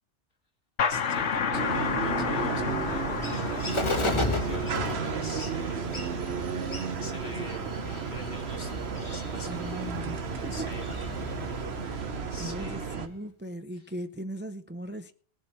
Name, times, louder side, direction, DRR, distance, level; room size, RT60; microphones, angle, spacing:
sound 1, 0.8-6.2, left 6 dB, 75° left, 1.2 m, -31 dB
voice 1, 0.8-6.0 6.3-7.7 8.1-9.6 10.5-10.9 12.3-12.8, left 2 dB, 55° left, 2.0 m, -45 dB
sound 2, 1.5-13.1, right 6 dB, 65° right, 1.1 m, -33 dB
Bird, 1.7-13.2, left 2 dB, 25° left, 1.2 m, -36 dB
voice 2, 9.4-10.7 12.4-15.1, right 1 dB, 15° right, 0.5 m, -39 dB
19.5 x 7.6 x 4.2 m
omnidirectional pair, 1.2 m